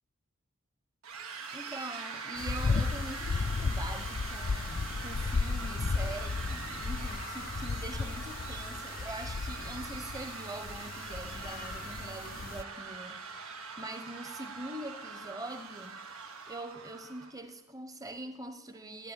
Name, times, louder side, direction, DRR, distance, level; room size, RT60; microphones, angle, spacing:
sound 1, 1.0-17.3, right 5 dB, 85° right, 1.6 m, -43 dB
voice 1, 1.5-16.0 16.5-19.1, right 1 dB, 15° right, 1.0 m, -43 dB
sound 2, 2.4-12.6, left 4 dB, 45° left, 0.4 m, -34 dB
14.5 x 9.2 x 8.3 m
head